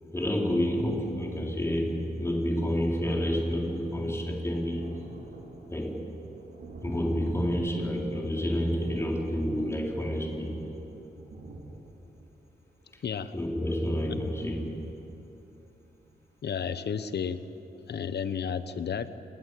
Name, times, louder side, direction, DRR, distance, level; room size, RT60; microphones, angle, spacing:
voice 1, 0.1-5.0 5.7-6.0 6.8-10.6 13.3-14.9, equal, 15° left, -1 dB, 3.9 m, -29 dB
Thunder, 2.2-2.3 2.5-15.1 15.6-15.7 16.0-16.1, right 2 dB, 90° right, 4.1 m, -48 dB
voice 2, 13.0-13.3 14.0-14.2 16.4-17.4 17.9-19.1, left 7 dB, 75° left, 12 dB, 1.1 m, -32 dB
28.5 x 19.5 x 8.5 m, 3.0 s
wide cardioid pair, 145°, 17 cm